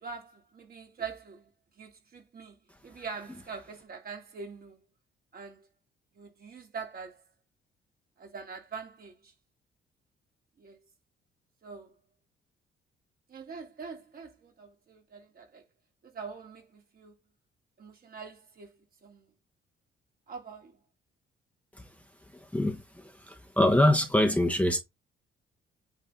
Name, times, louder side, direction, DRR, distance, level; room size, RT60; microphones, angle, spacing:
voice 1, 0.0-1.5 1.8-4.8 5.3-5.7 6.1-7.2 8.2-9.3 10.6-10.8 11.6-11.9 13.3-15.7 16.0-17.1 17.8-18.7 19.0-19.3 20.3-20.8, right 5 dB, 50° right, 3.2 m, -44 dB
voice 2, 22.5-24.8, left 1 dB, 5° left, 1.2 m, -24 dB
8.8 x 4.1 x 3.9 m
cardioid pair, 90°, 20 cm